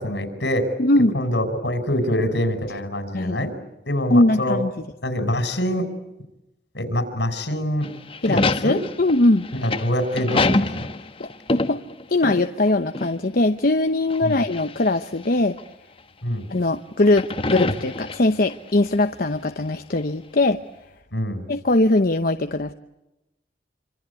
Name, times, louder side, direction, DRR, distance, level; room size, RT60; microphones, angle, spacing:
voice 1, 0.0-0.7 1.1-3.5 3.9-4.6 5.0-5.9 6.7-7.9 8.3-8.8 9.5-10.9 14.2-14.4 16.2-16.5 21.1-21.4, equal, 80° left, 9 dB, 5.6 m, -25 dB
voice 2, 0.8-1.1 3.1-3.4 4.1-4.8 8.2-9.5 11.2-11.8 12.1-15.6 16.5-20.6 21.5-22.7, left 2 dB, 55° left, 7 dB, 0.9 m, -21 dB
sound 1, 7.8-12.7 12.9-13.1 14.1-14.9 15.6-15.7 17.0-18.5, left 2 dB, 30° left, 1.2 m, -25 dB
27.0 x 26.0 x 8.3 m, 0.94 s
head